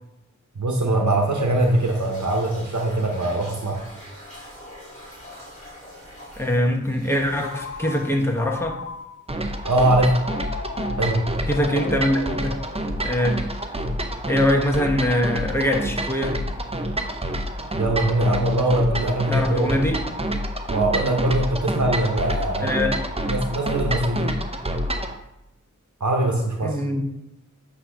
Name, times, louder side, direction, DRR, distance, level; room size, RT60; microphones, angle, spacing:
voice 1, 0.6-3.8 9.6-10.1 10.9-11.2 17.7-19.8 20.7-22.9 23.3-24.3 26.0-26.8, right 1 dB, 65° right, 1 dB, 0.9 m, -22 dB
sound 1, 1.4-9.0, equal, 25° left, 2.6 m, -44 dB
voice 2, 6.4-8.8 11.5-12.6 13.0-13.5 14.3-16.3 19.3-20.0 22.6-23.0 26.6-27.0, left 1 dB, 10° left, 2 dB, 1.1 m, -23 dB
Telephone, 7.4-9.4 10.2-13.3, left 5 dB, 50° left, 0.5 m, -37 dB
sound 2, 9.3-25.2, right 1 dB, 20° right, 0.7 m, -28 dB
8.3 x 2.8 x 5.7 m, 0.89 s
wide cardioid pair, 55°, 31 cm